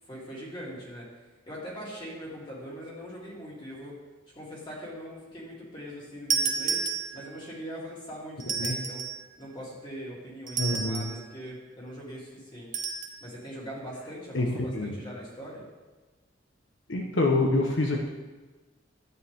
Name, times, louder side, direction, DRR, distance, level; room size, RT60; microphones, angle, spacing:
voice 1, 0.1-1.1 1.5-4.0 4.3-6.8 7.1-9.1 9.4-12.8 13.2-15.6, equal, 25° left, -5 dB, 3.1 m, -41 dB
sound 1, 6.3-7.5 8.4-9.3 10.5-11.2 12.7-13.2, right 5 dB, 40° right, 1.0 m, -30 dB
voice 2, 10.6-11.0 14.3-14.5 14.7-14.9 16.9-18.1, left 2 dB, 85° left, 1 dB, 1.1 m, -26 dB
12.0 x 9.0 x 3.6 m, 1.3 s
head